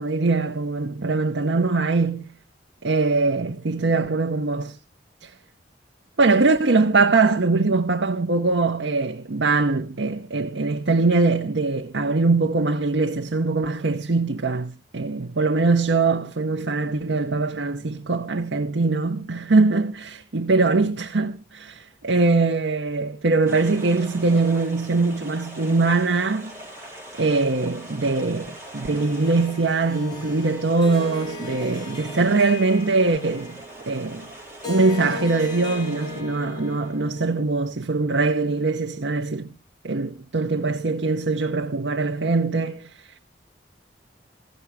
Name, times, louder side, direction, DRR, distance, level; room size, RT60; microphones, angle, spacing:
voice 1, 0.0-2.3 2.8-4.8 5.2-5.3 6.2-26.5 27.2-33.6 33.9-34.3 34.7-39.5 39.8-42.9, right 3 dB, 75° right, 0.8 m, -22 dB
sound 1, 23.5-36.2, right 1 dB, 15° right, 4.7 m, -43 dB
Harp, 29.0-37.4, left 3 dB, 25° left, 2.4 m, -37 dB
15.5 x 6.9 x 4.8 m
head